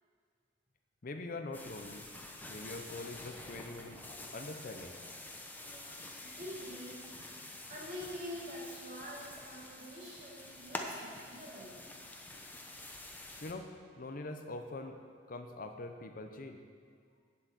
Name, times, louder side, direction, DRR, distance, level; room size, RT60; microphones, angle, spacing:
voice 1, 1.0-2.1 2.5-4.0 4.3-4.9 13.4-13.7 14.0-15.0 15.3-16.6, left 2 dB, 50° left, 6 dB, 0.7 m, -43 dB
sound 1, 1.5-13.5, left 2 dB, 10° left, 0.9 m, -47 dB
voice 2, 5.5-7.0 7.2-11.9, equal, 50° right, -6 dB, 3.4 m, -46 dB
8.7 x 8.1 x 7.6 m, 2.1 s
head